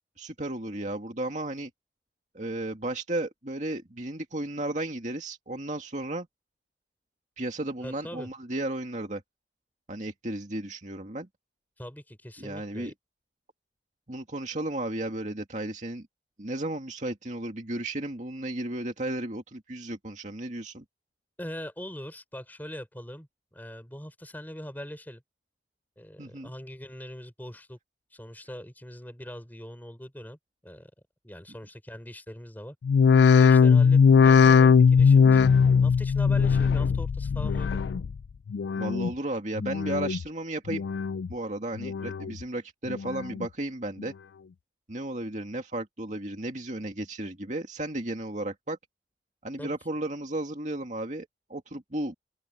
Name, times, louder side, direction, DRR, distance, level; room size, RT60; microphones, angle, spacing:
voice 1, 0.0-1.7 2.3-6.3 7.4-9.2 9.9-11.3 12.4-12.9 14.1-16.1 16.4-20.8 26.2-26.5 38.8-40.8 41.3-44.1 44.9-48.8 49.4-52.1, right 1 dB, 45° right, 2.3 m, -34 dB
voice 2, 7.8-8.3 11.8-12.9 21.4-25.2 26.0-27.8 28.1-30.4 30.6-30.9 31.2-32.8 33.3-34.0 34.2-35.5 35.8-37.8 49.6-49.8, equal, 10° left, 5.4 m, -42 dB
sound 1, 32.8-38.2 38.5-39.1 39.6-40.2 40.7-41.3 41.8-42.4 42.9-43.5 44.0-44.1, left 6 dB, 80° left, 0.3 m, -20 dB
open air
head